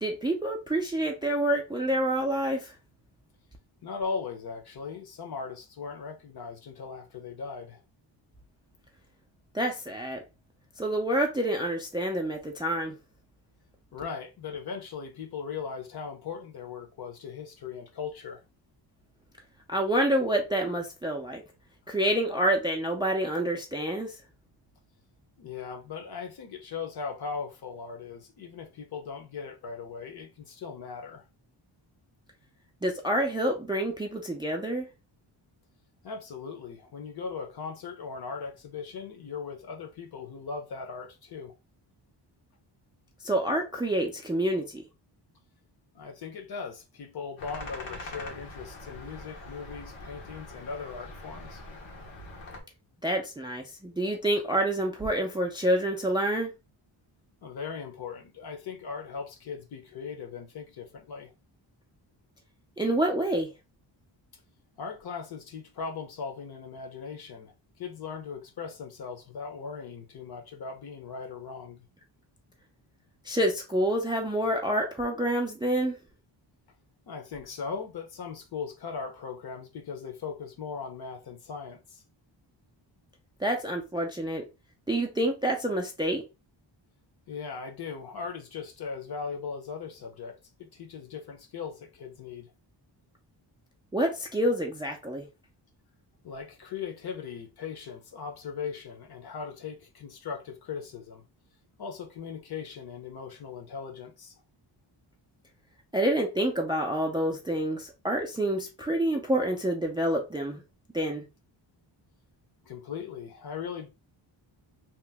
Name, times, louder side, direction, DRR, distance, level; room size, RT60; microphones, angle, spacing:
voice 1, 0.0-2.7 9.5-10.2 10.8-13.0 19.7-21.4 21.9-24.1 32.8-34.9 43.2-44.8 53.0-56.5 62.8-63.5 73.3-76.0 83.4-84.4 84.9-86.2 93.9-95.3 105.9-110.6 110.9-111.2, right 1 dB, 10° right, 0.3 m, -27 dB
voice 2, 3.8-7.8 13.9-18.4 25.4-31.2 36.0-41.5 45.9-51.6 57.4-61.3 64.8-71.8 77.1-82.0 87.3-92.5 96.2-101.2 101.8-104.3 112.6-113.9, left 5 dB, 55° left, 0.8 m, -39 dB
sound 1, 47.4-52.6, left 2 dB, 85° left, 1.1 m, -43 dB
2.9 x 2.0 x 3.3 m
wide cardioid pair, 120°, 46 cm